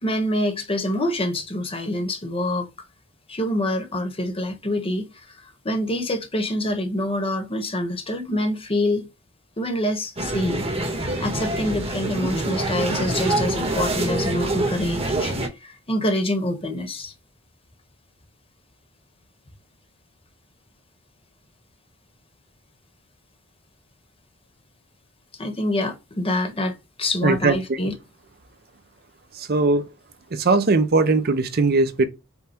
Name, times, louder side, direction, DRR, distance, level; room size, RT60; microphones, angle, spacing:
voice 1, 0.0-2.7 3.3-5.3 5.6-9.1 9.6-10.6 11.2-15.3 15.6-17.1 25.4-27.9, left 1 dB, 25° left, 1.1 m, -26 dB
sound 1, 10.2-15.5, right 2 dB, 30° right, 1.3 m, -25 dB
voice 2, 27.2-27.8 29.4-29.8 30.3-32.1, right 3 dB, 50° right, 0.6 m, -20 dB
5.4 x 2.3 x 4.4 m
head